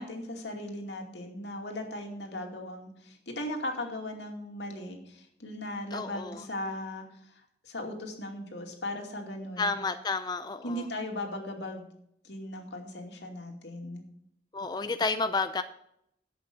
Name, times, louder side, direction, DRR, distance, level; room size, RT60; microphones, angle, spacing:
voice 1, 0.0-7.0 7.3-9.8 10.6-11.8 12.2-14.0, left 1 dB, 85° left, 2 dB, 2.5 m, -38 dB
voice 2, 5.9-6.5 9.6-10.9 14.5-15.6, left 3 dB, 25° left, 9 dB, 0.5 m, -31 dB
11.5 x 8.1 x 5.4 m, 0.75 s
head